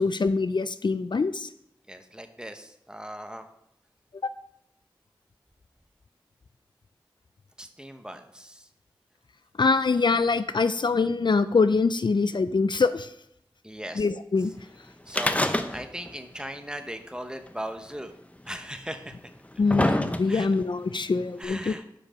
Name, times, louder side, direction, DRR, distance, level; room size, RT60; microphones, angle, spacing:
voice 1, 0.0-1.5 9.6-13.1 14.0-14.5 19.6-21.7, left 4 dB, 65° left, 12 dB, 0.4 m, -24 dB
voice 2, 1.9-3.5 7.6-8.7 13.6-14.1 14.4-14.6 15.1-18.1 18.4-19.2 20.2-20.5 21.4-22.0, equal, 10° right, 7 dB, 0.9 m, -38 dB
sound 1, 15.1-16.1 16.4-16.5 17.5-17.6 18.5-18.6 19.2-20.6 21.4-21.5, left 1 dB, 15° left, 0.6 m, -26 dB
8.6 x 5.9 x 5.1 m, 0.77 s
wide cardioid pair, 55°, 9 cm